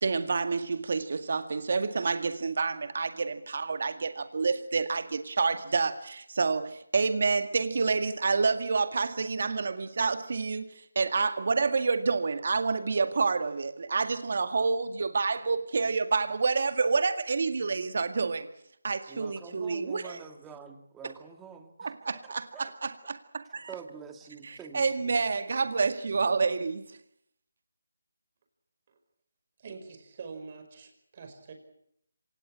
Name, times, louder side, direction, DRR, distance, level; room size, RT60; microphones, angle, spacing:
voice 1, 0.0-18.5 18.8-20.2 21.0-21.1 21.8-23.7 24.4-26.8, right 4 dB, 55° right, 10 dB, 2.0 m, -28 dB
voice 2, 19.1-21.9 22.5-22.7 23.7-25.2, right 6 dB, 10° right, 6 dB, 2.1 m, -46 dB
voice 3, 29.6-31.5, right 5 dB, 35° right, 7 dB, 5.2 m, -45 dB
26.0 x 18.5 x 8.8 m, 0.73 s
figure-of-eight pair, 165°, 0 cm